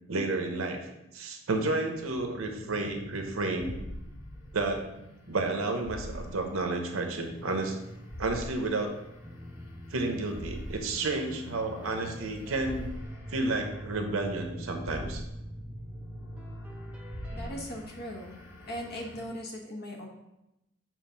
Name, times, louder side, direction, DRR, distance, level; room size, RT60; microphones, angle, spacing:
voice 1, 0.1-0.8 1.1-3.8 4.5-4.8 5.3-7.8 8.2-8.9 9.9-12.9 13.3-15.2, right 2 dB, 80° right, 4 dB, 0.8 m, -31 dB
sound 1, 1.9-19.2, equal, 65° left, 1.3 m, -45 dB
sound 2, 9.2-17.8, equal, 5° right, 0.6 m, -44 dB
voice 2, 17.3-18.4 18.7-20.1, equal, 45° left, 1 dB, 1.0 m, -39 dB
7.3 x 2.5 x 5.6 m, 0.91 s
head